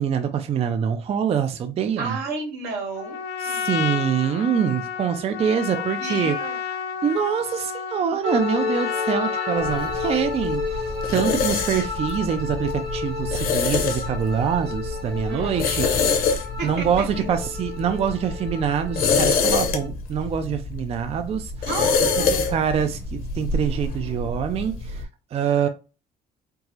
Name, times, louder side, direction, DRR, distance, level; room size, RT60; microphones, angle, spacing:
voice 1, 0.0-2.2 3.4-6.3 7.0-10.8 11.1-16.1 16.6-21.5 22.3-25.7, right 7 dB, 35° right, 0.4 m, -25 dB
voice 2, 2.0-3.8 5.7-6.6 15.3-15.7 16.6-17.2 21.6-22.5, right 3 dB, 90° right, 1.8 m, -32 dB
Trumpet, 2.9-10.3, left 7 dB, 85° left, 0.5 m, -31 dB
sound 1, 8.2-19.9, left 4 dB, 70° right, 1.0 m, -31 dB
sound 2, 9.6-25.0, left 4 dB, 60° left, 0.9 m, -26 dB
4.5 x 2.0 x 2.7 m
cardioid pair, 110°, 17 cm